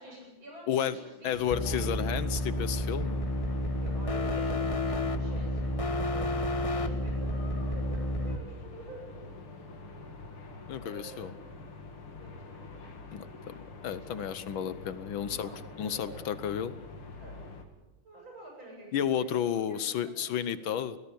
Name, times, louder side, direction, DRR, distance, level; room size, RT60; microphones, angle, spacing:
voice 1, 0.0-2.2 3.8-5.7 6.1-10.0 10.8-11.4 12.1-12.8 13.2-14.4 15.2-16.3 17.2-17.4 18.0-20.6, right 1 dB, 65° right, 0 dB, 9.0 m, -49 dB
voice 2, 1.2-3.2 10.7-11.3 13.1-15.5 15.8-16.7 18.9-21.0, left 9 dB, 70° left, 14 dB, 1.7 m, -32 dB
sound 1, 1.3-17.6, left 3 dB, 90° left, 3.2 m, -46 dB
sound 2, 1.5-8.4, left 1 dB, 25° left, 0.8 m, -31 dB
20.5 x 16.5 x 8.9 m, 1.1 s
omnidirectional pair, 2.3 m